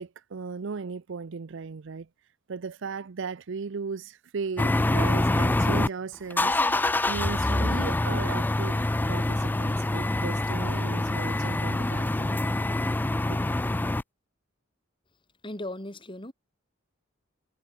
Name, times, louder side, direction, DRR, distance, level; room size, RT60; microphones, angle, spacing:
voice 1, 0.0-2.1 2.5-12.4 13.3-13.4, right 5 dB, 65° right, 0.5 m, -36 dB
sound 1, 4.6-5.9 6.3-14.0, left 2 dB, 10° left, 0.3 m, -25 dB
voice 2, 15.4-16.3, left 1 dB, 25° left, 4.6 m, -37 dB
head